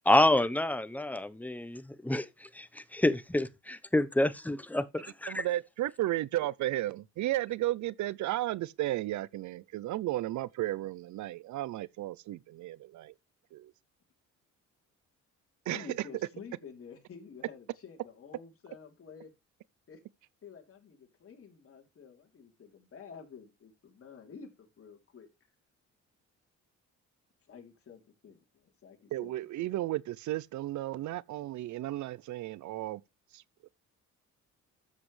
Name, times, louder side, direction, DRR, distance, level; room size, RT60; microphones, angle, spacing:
voice 1, 0.1-5.4, left 1 dB, 5° left, 0.9 m, -28 dB
voice 2, 5.3-13.1 13.5-13.7 15.7-16.0 29.1-33.0 33.3-33.7, right 15 dB, 70° right, 0.5 m, -34 dB
voice 3, 15.7-19.3 19.9-20.0 20.4-25.3 27.5-29.3 29.6-29.7, left 6 dB, 50° left, 3.3 m, -50 dB
13.0 x 7.5 x 3.3 m
cardioid pair, 90°, 30 cm